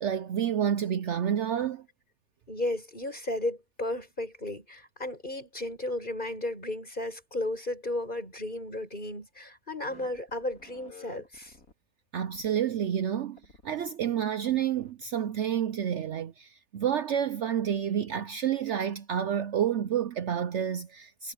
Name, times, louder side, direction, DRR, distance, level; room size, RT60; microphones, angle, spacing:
voice 1, 0.0-1.8 12.1-13.4 13.6-21.3, right 9 dB, 60° right, 0.9 m, -29 dB
voice 2, 2.5-11.6, left 1 dB, 35° left, 6.8 m, -34 dB
sound 1, 9.9-11.7 12.3-12.5 13.4-13.9 14.4-14.9, left 4 dB, 90° left, 4.2 m, -51 dB
omnidirectional pair, 1.5 m